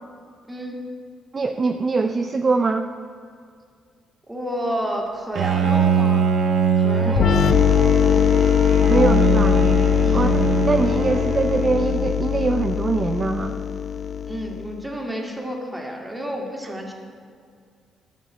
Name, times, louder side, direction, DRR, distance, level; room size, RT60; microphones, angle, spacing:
voice 1, 1.3-2.9 7.0-7.2 8.9-9.6 10.1-13.6, right 3 dB, 35° right, 6 dB, 0.5 m, -23 dB
voice 2, 4.3-6.3 6.7-7.7 10.0-10.3 14.3-16.9, equal, 10° right, 0 dB, 2.1 m, -30 dB
Bowed string instrument, 5.3-12.5, right 6 dB, 65° right, 0.9 m, -23 dB
sound 1, 7.2-14.7, left 8 dB, 55° left, 0.4 m, -20 dB
12.5 x 5.2 x 8.7 m, 2.2 s
cardioid pair, 90°, 0 cm